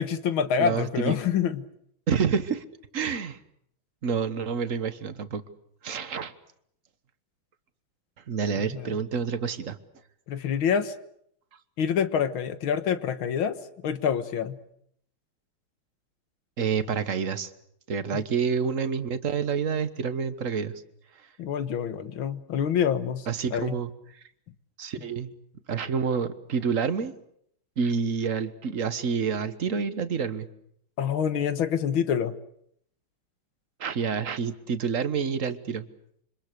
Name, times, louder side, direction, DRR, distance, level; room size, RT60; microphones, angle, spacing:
voice 1, 0.0-1.6 8.6-8.9 10.3-11.0 11.8-14.6 18.1-18.2 21.4-23.8 31.0-32.4, left 8 dB, 70° left, 11 dB, 2.1 m, -27 dB
voice 2, 0.6-1.1 2.1-2.6 2.9-3.4 4.0-5.4 5.8-6.3 8.3-9.8 16.6-17.5 17.9-20.7 23.3-23.9 24.8-25.3 25.7-27.1 27.8-30.5 33.8-35.9, right 6 dB, 45° right, 12 dB, 1.4 m, -28 dB
27.0 x 25.5 x 6.7 m, 0.70 s
omnidirectional pair, 2.3 m